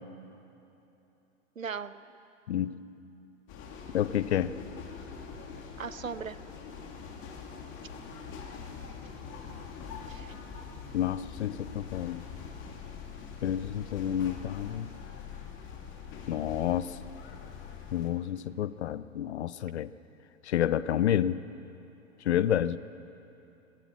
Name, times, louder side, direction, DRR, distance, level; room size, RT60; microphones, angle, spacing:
voice 1, 1.6-2.0 5.8-6.4 10.1-10.3, right 6 dB, 85° right, 16 dB, 0.7 m, -38 dB
voice 2, 2.5-2.8 3.9-4.5 10.9-12.2 13.4-14.9 16.3-17.0 17.9-19.9 20.4-21.4 22.2-22.8, left 11 dB, 60° left, 16 dB, 0.7 m, -29 dB
sound 1, 3.5-18.1, left 6 dB, 30° left, 2.5 m, -44 dB
22.5 x 14.0 x 8.4 m, 3.0 s
figure-of-eight pair, 100°, 39 cm